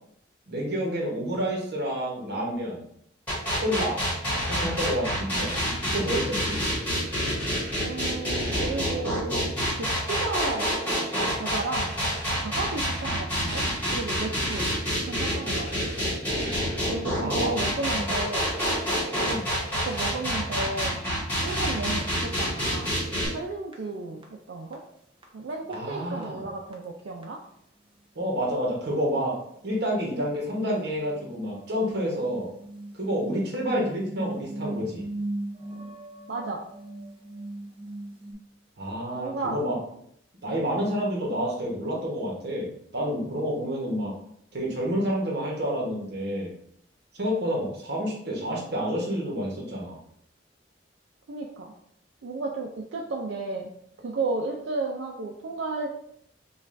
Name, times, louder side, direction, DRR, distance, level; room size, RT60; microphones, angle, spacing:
voice 1, 0.5-2.8 3.6-4.0 4.4-5.5 5.9-6.6 17.1-17.5 17.9-18.1 19.2-19.4 25.7-26.5 28.1-29.4 29.6-32.5 32.9-35.0 38.8-39.8 40.4-44.1 44.5-46.5 47.1-50.0, equal, 60° right, -2 dB, 1.1 m, -29 dB
sound 1, 3.3-23.3, equal, 10° left, 1.4 m, -27 dB
voice 2, 7.8-9.4 9.8-10.7 11.3-11.9 12.4-13.6 13.9-14.7 15.0-15.9 16.9-18.5 19.9-21.0 21.4-23.0 23.3-24.8 25.3-27.4 36.3-36.6 39.1-39.6 51.3-51.7 52.2-53.7 54.0-55.9, right 3 dB, 85° right, 0 dB, 0.4 m, -33 dB
sound 2, 23.2-23.3 23.7-23.8 24.2-24.3 24.7-24.8 25.2-25.3 25.6-25.9 26.2-26.3 26.7-26.8 27.2-27.3 27.6-27.7 29.6-29.7 30.1-38.3, right 1 dB, 30° right, 0.6 m, -38 dB
5.1 x 2.3 x 2.5 m, 0.71 s
head